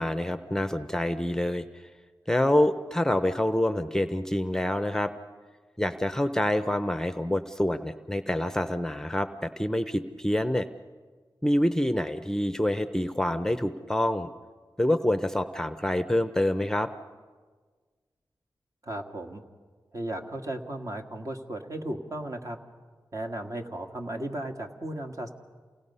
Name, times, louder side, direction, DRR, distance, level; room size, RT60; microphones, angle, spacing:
voice 1, 0.0-1.9 2.3-5.1 5.8-10.7 11.4-14.3 14.8-16.9, left 1 dB, 5° left, 10 dB, 0.7 m, -26 dB
voice 2, 18.8-19.4 19.9-22.6 23.1-25.3, right 1 dB, 45° right, 4 dB, 1.7 m, -35 dB
28.5 x 18.0 x 5.5 m, 1.5 s
wide cardioid pair, 65°, 8 cm